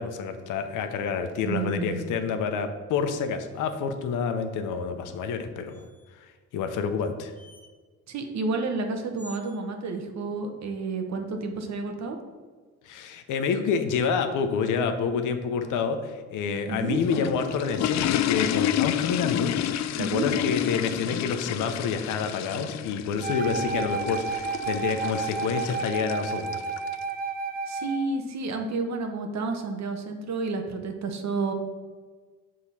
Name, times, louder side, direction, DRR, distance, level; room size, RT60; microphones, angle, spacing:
voice 1, 0.0-5.8 6.1-7.3 12.8-19.5 20.0-26.6, left 6 dB, 85° left, 7 dB, 0.8 m, -28 dB
voice 2, 1.4-2.1 8.1-12.2 16.7-17.0 20.0-20.3 27.7-31.5, right 3 dB, 65° right, 5 dB, 1.1 m, -30 dB
sound 1, 5.7-6.2 7.3-7.7 9.2-9.6, right 1 dB, 5° left, 1.0 m, -49 dB
sound 2, 16.7-27.0, left 11 dB, 65° left, 0.4 m, -30 dB
Wind instrument woodwind instrument, 23.2-28.1, right 5 dB, 30° right, 0.5 m, -31 dB
6.3 x 3.7 x 5.7 m, 1.4 s
cardioid pair, 90°, 30 cm